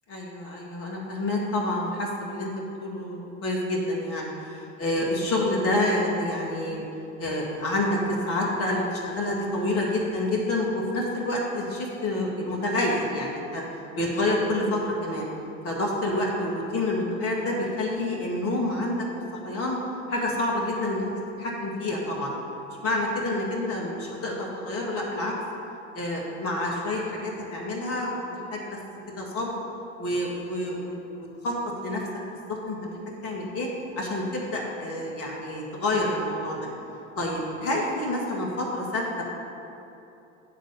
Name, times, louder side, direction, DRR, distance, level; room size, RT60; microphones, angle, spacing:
voice 1, 0.1-6.8 7.2-13.6 13.9-15.2 15.6-19.0 19.4-19.8 20.1-21.1 21.4-22.3 22.8-25.3 25.9-28.6 29.2-29.5 30.0-31.5 31.8-32.0 32.5-33.0 33.2-33.7 33.9-36.7 37.2-39.2, left 1 dB, 35° left, -3 dB, 1.5 m, -28 dB
8.3 x 4.0 x 6.6 m, 2.9 s
figure-of-eight pair, 70°, 39 cm